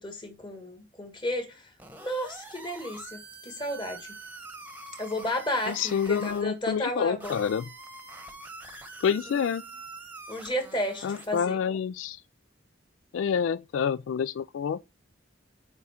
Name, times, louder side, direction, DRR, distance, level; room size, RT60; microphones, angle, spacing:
voice 1, 0.0-1.6 2.0-4.1 5.0-7.4 9.3-9.5 10.3-11.6, left 1 dB, 25° left, 1.7 m, -33 dB
sound 1, 1.8-6.4 7.2-11.4, right 2 dB, 10° right, 1.0 m, -45 dB
voice 2, 5.7-7.7 9.0-9.6 11.0-12.2 13.1-14.8, left 7 dB, 85° left, 0.3 m, -28 dB
9.0 x 3.5 x 4.4 m
head